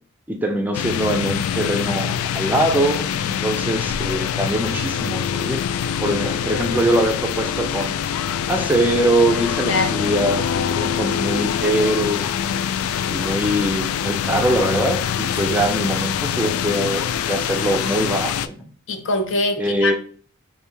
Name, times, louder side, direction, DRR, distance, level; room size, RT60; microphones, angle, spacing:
voice 1, 0.3-8.0 8.5-12.4 13.1-18.7 19.6-19.9, right 1 dB, 10° right, 0.4 m, -23 dB
sound 1, 0.7-18.5, left 8 dB, 90° left, 0.3 m, -24 dB
voice 2, 18.9-20.0, left 2 dB, 60° left, 0.7 m, -23 dB
3.3 x 2.7 x 4.6 m
head